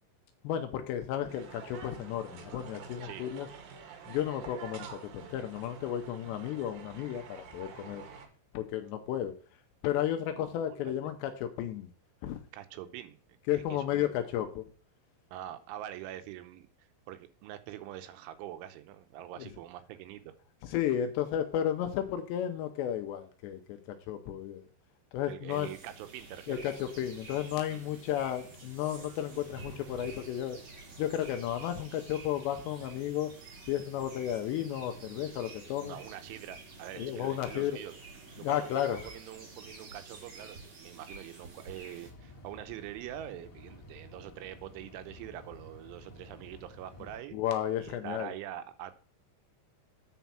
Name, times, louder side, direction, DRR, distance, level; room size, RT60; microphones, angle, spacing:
voice 1, 0.4-3.5 4.1-8.0 8.5-9.3 9.8-11.9 12.2-12.4 13.5-14.7 20.6-23.8 24.1-24.7 25.1-25.7 26.5-30.6 31.0-33.3 33.7-36.0 37.0-37.8 38.4-39.0 47.3-48.3, left 11 dB, 80° left, 7 dB, 2.7 m, -33 dB
sound 1, 1.3-8.3, right 6 dB, 65° right, 2.5 m, -48 dB
voice 2, 10.3-11.1 12.5-13.2 13.5-14.2 15.3-16.7 17.1-20.3 25.2-26.7 27.7-27.9 35.8-37.9 38.4-47.4 47.8-48.9, right 12 dB, 85° right, 9 dB, 3.2 m, -44 dB
sound 2, 25.5-42.1, right 3 dB, 45° right, 1.7 m, -49 dB
sound 3, 42.0-47.2, left 1 dB, 35° left, 1.7 m, -52 dB
9.3 x 5.1 x 5.8 m, 0.41 s
omnidirectional pair, 5.5 m